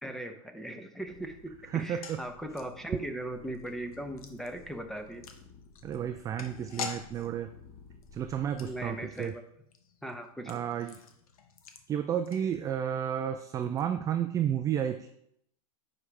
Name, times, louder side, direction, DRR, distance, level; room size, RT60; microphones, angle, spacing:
voice 1, 0.0-5.2 8.6-9.4 10.0-10.6, right 1 dB, ahead, 6 dB, 0.8 m, -39 dB
sound 1, 1.0-9.1, left 5 dB, 40° left, 1.2 m, -55 dB
sound 2, 1.7-13.0 13.2-13.3 13.6-13.8, left 6 dB, 85° left, 1.0 m, -47 dB
voice 2, 1.7-2.2 5.8-7.5 8.1-9.3 10.5-11.0 11.9-15.1, right 9 dB, 20° right, 7 dB, 0.3 m, -32 dB
10.0 x 4.9 x 3.3 m, 0.73 s
supercardioid pair, 135°, 18 cm